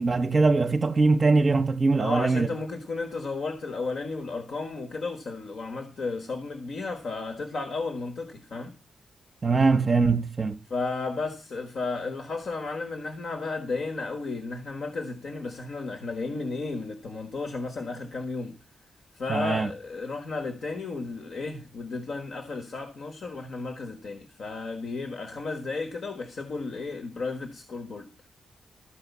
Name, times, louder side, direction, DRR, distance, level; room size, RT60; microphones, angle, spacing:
voice 1, 0.0-2.5 9.4-10.6 19.3-19.7, right 3 dB, 35° right, 0.7 m, -22 dB
voice 2, 2.0-8.7 10.7-18.6 19.1-28.1, left 3 dB, 65° left, 1.4 m, -33 dB
13.5 x 5.0 x 8.2 m
wide cardioid pair, 125°, 0 cm